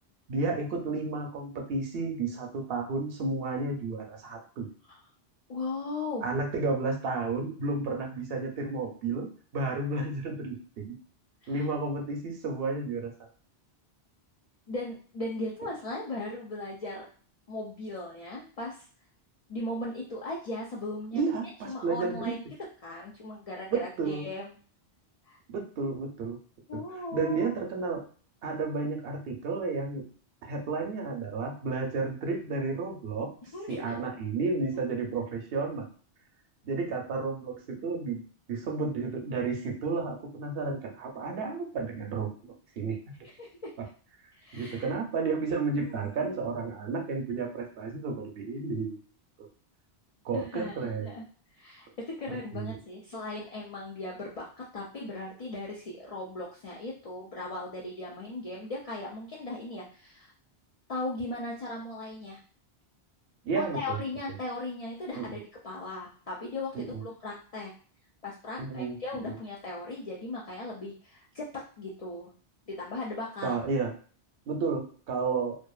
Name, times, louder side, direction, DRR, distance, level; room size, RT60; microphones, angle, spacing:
voice 1, 0.3-4.7 6.2-9.3 9.5-10.9 11.5-13.1 21.1-22.3 23.7-24.3 25.5-26.4 26.7-26.8 27.1-28.0 28.4-30.0 30.4-33.3 33.7-35.9 36.6-38.2 38.5-43.0 44.5-49.0 50.2-51.1 52.3-52.8 63.4-64.0 64.3-64.4 65.1-65.4 66.7-67.0 68.6-69.0 69.3-69.4 73.4-73.9 74.5-75.6, right 4 dB, 65° right, 2 dB, 0.7 m, -32 dB
voice 2, 5.5-6.3 11.4-11.6 14.7-17.1 17.5-18.9 19.5-21.2 21.6-22.4 22.8-24.5 25.3-25.4 26.7-27.5 33.4-33.9 43.4-43.5 44.3-44.9 45.2-45.4 45.8-46.3 50.3-51.3 51.5-60.3 60.9-62.4 63.5-67.7 68.2-72.3 72.7-73.5, left 2 dB, 65° left, -4 dB, 0.3 m, -38 dB
2.6 x 2.4 x 2.3 m, 0.42 s
omnidirectional pair, 1.1 m